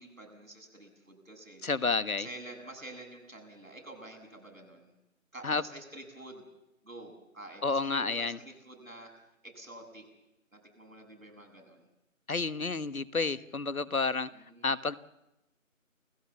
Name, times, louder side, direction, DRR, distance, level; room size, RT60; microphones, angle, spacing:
voice 1, 0.0-1.6 2.2-4.9 5.3-6.4 6.8-9.1 9.4-10.0 10.5-11.9 14.4-14.7, right 1 dB, 70° right, 3 dB, 7.8 m, -48 dB
voice 2, 1.6-2.3 5.4-5.6 7.6-8.4 12.3-14.3 14.6-15.0, left 4 dB, 85° left, 15 dB, 1.3 m, -30 dB
28.5 x 16.5 x 7.3 m, 0.90 s
figure-of-eight pair, 175°, 42 cm